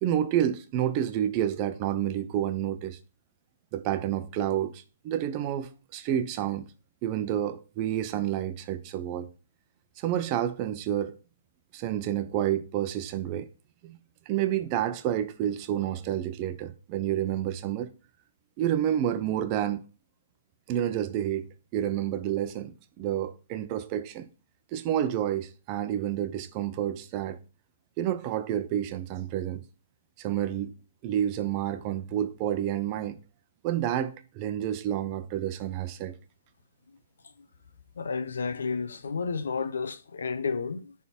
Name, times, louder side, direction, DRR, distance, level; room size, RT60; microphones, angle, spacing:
voice 1, 0.0-3.0 3.7-6.7 7.0-9.3 10.0-11.1 11.7-13.5 13.8-14.0 14.3-17.9 18.6-19.8 20.7-24.3 24.7-27.4 28.0-29.6 30.2-30.7 31.0-33.2 33.6-36.1, right 11 dB, 35° right, 0.7 m, -29 dB
voice 2, 38.0-40.9, left 5 dB, 85° left, 0.8 m, -31 dB
10.5 x 3.6 x 4.4 m
hypercardioid pair, 145°, 0 cm